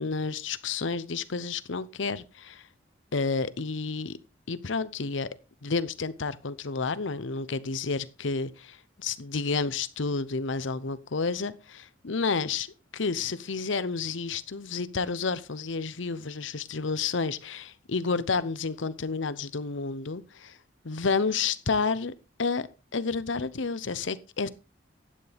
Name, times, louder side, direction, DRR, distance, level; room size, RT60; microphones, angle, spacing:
voice 1, 0.0-2.6 3.1-4.2 4.5-5.3 5.6-12.7 12.9-20.6 20.8-22.1 22.4-22.7 22.9-24.5, left 4 dB, 75° left, 0.8 m, -30 dB
12.0 x 9.5 x 3.5 m
head